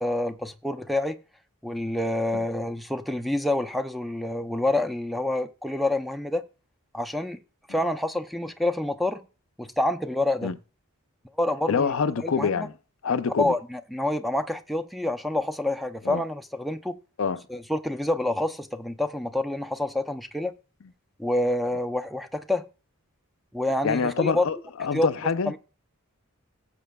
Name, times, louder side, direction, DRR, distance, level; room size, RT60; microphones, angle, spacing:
voice 1, 0.0-1.2 1.6-6.4 6.9-7.4 7.7-9.2 9.6-10.5 11.4-11.9 12.2-12.7 13.4-17.0 17.5-20.5 21.2-22.7 23.5-24.5 24.9-25.1 25.5-25.6, left 1 dB, ahead, 0.5 m, -27 dB
voice 2, 11.7-12.7 13.0-13.5 16.1-16.2 17.2-17.4 23.8-25.5, left 5 dB, 65° left, 0.5 m, -26 dB
18.5 x 7.5 x 2.3 m
head